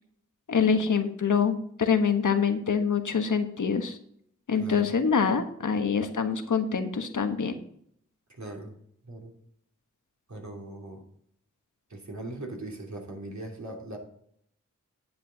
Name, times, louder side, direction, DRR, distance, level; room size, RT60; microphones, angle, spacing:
voice 1, 0.5-4.0 4.5-7.5, left 6 dB, 80° left, 7 dB, 1.3 m, -25 dB
voice 2, 4.5-4.9 8.3-8.7 9.0-9.3 10.3-11.1 11.9-14.0, right 2 dB, 65° right, 0 dB, 3.0 m, -40 dB
10.0 x 7.9 x 4.0 m, 0.68 s
wide cardioid pair, 60°, 30 cm